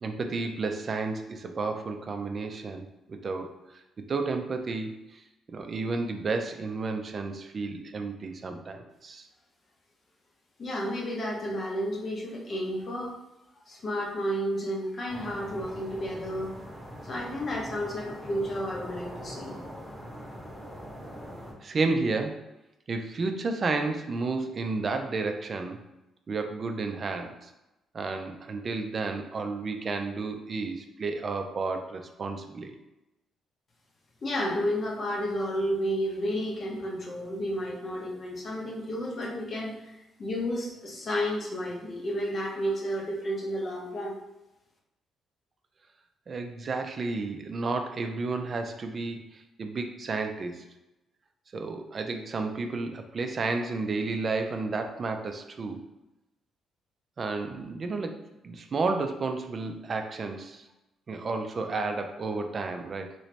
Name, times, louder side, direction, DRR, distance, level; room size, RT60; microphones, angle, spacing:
voice 1, 0.0-3.8 4.1-5.2 5.5-9.3 21.6-22.4 22.9-25.8 26.3-27.5 27.9-32.8 46.3-50.6 51.5-55.8 57.2-58.2 58.4-60.7 61.1-63.1, right 3 dB, 45° right, 5 dB, 0.4 m, -32 dB
voice 2, 10.6-13.2 13.7-16.5 17.0-19.6 34.2-39.9 40.2-44.1, equal, 40° left, -1 dB, 0.8 m, -31 dB
sound 1, 15.1-21.5, equal, 5° right, 1.0 m, -42 dB
3.0 x 2.7 x 3.2 m, 0.95 s
cardioid pair, 90°, 0 cm